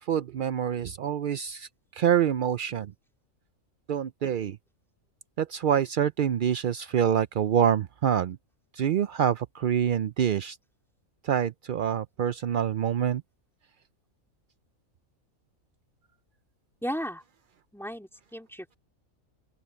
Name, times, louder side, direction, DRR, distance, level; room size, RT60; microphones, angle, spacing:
voice 1, 0.0-2.9 3.9-4.6 5.4-8.4 8.7-10.6 11.2-13.2, right 9 dB, 70° right, 0.5 m, -26 dB
voice 2, 16.8-17.2 17.7-18.8, equal, ahead, 3.2 m, -35 dB
open air
omnidirectional pair, 1.5 m